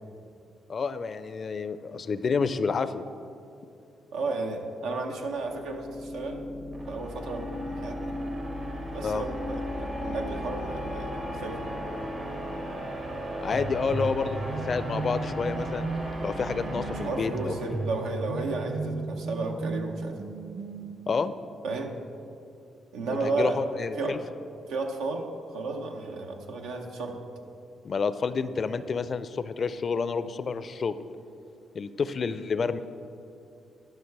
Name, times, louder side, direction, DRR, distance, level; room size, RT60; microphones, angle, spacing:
voice 1, 0.7-3.0 9.0-9.2 13.4-15.9 16.2-17.8 21.1-21.3 23.2-24.2 27.8-31.0 31.7-32.8, left 5 dB, 50° left, 13 dB, 0.4 m, -29 dB
voice 2, 4.1-6.4 6.9-8.1 8.9-11.8 16.9-20.3 21.6-22.0 22.9-23.6 24.0-24.2 24.7-27.2, right 3 dB, 90° right, 3 dB, 0.8 m, -33 dB
sound 1, 5.1-18.3, equal, 60° right, 1.5 m, -36 dB
sound 2, 13.5-21.1, right 3 dB, 40° right, 0.5 m, -35 dB
11.5 x 5.8 x 4.7 m, 2.6 s
supercardioid pair, 65°, 0 cm